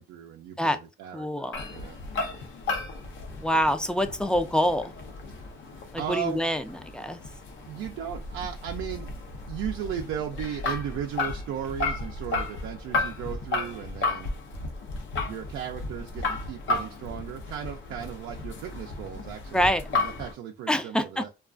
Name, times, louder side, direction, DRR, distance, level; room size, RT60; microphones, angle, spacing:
voice 1, 0.0-2.0 2.4-2.6 6.0-6.4 7.7-9.1 9.5-14.3 15.2-21.3, right 9 dB, 85° right, 0.4 m, -36 dB
voice 2, 1.1-1.7 3.4-4.9 6.1-6.6 6.9-7.2 19.5-19.8 20.7-21.2, equal, 5° left, 0.4 m, -25 dB
sound 1, 1.5-20.3, left 3 dB, 70° left, 0.6 m, -34 dB
2.3 x 2.3 x 2.4 m
cardioid pair, 90°, 20 cm